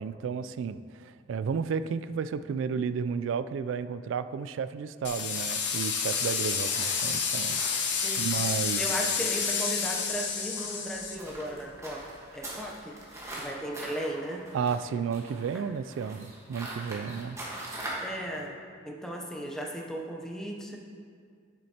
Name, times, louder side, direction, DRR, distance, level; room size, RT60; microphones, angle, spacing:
voice 1, 0.0-7.6 8.2-8.8 14.5-17.4, right 6 dB, 85° right, 13 dB, 0.3 m, -32 dB
sound 1, 5.0-11.2, left 6 dB, 65° left, 0.7 m, -29 dB
sound 2, 6.0-18.1, right 1 dB, 15° right, 1.3 m, -43 dB
voice 2, 8.8-12.0 12.3-12.9 13.4-14.5 15.5-15.6 18.0-18.6 18.8-20.8, equal, 5° left, -1 dB, 0.7 m, -36 dB
9.3 x 7.3 x 2.8 m, 2.1 s
head